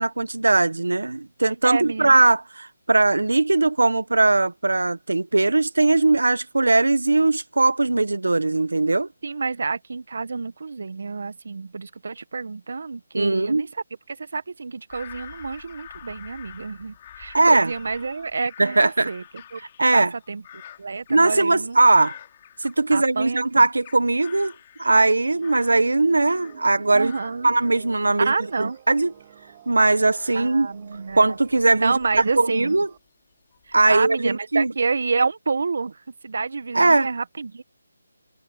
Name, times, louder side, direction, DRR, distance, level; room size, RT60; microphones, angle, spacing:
voice 1, 0.0-9.1 13.1-13.7 17.3-17.7 18.6-19.1 19.8-20.1 21.1-22.1 22.6-24.5 24.8-27.1 27.4-29.1 29.7-30.7 31.2-31.9 32.4-32.9 33.7-34.7 36.7-37.1, right 2 dB, 90° right, 1.2 m, -19 dB
voice 2, 1.6-2.1 9.2-19.2 19.5-19.6 19.9-20.4 20.8-21.8 22.9-23.7 26.9-27.5 28.2-28.8 30.3-31.3 31.8-32.8 33.7-37.6, right 4 dB, 65° right, 1.4 m, -28 dB
Bird vocalization bird call bird song / Crow, 14.9-23.2 23.6-26.7 27.0-33.0 33.5-34.1, left 11 dB, 30° left, 3.4 m, -47 dB
sound 1, 25.0-33.0, right 11 dB, 30° right, 3.2 m, -50 dB
sound 2, 27.5-32.3, right 6 dB, 45° right, 7.9 m, -57 dB
figure-of-eight pair, 160°, 0 cm